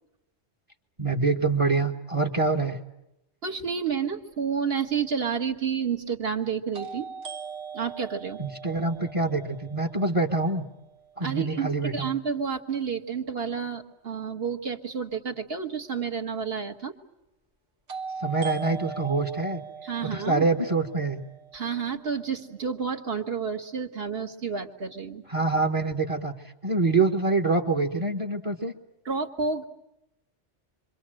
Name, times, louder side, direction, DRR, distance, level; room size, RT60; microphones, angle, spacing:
voice 1, 1.0-2.8 8.4-10.6 11.2-12.1 18.2-19.6 20.0-21.2 25.3-26.3 26.6-28.7, right 3 dB, 30° right, 5 dB, 1.3 m, -25 dB
voice 2, 3.4-7.1 7.7-8.4 11.2-16.9 19.8-20.4 21.5-25.2 29.1-29.7, right 6 dB, 55° right, 3 dB, 1.8 m, -30 dB
sound 1, 4.8-4.9 6.7-10.7 17.9-21.9, right 6 dB, 90° right, 2.2 m, -40 dB
27.5 x 24.5 x 7.7 m, 0.89 s
omnidirectional pair, 1.2 m